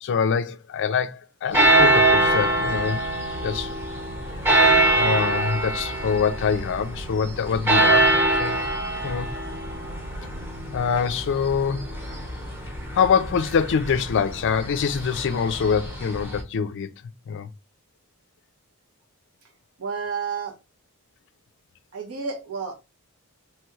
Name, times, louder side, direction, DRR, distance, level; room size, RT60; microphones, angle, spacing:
voice 1, 0.0-3.0 3.4-3.7 4.9-8.6 9.0-9.3 10.7-11.9 12.9-16.9 17.3-17.5, left 6 dB, 55° left, 0.4 m, -25 dB
sound 1, 1.5-16.4, right 2 dB, 10° right, 0.8 m, -23 dB
voice 2, 19.8-20.6 21.9-22.7, right 5 dB, 75° right, 1.0 m, -30 dB
3.0 x 2.3 x 3.0 m
head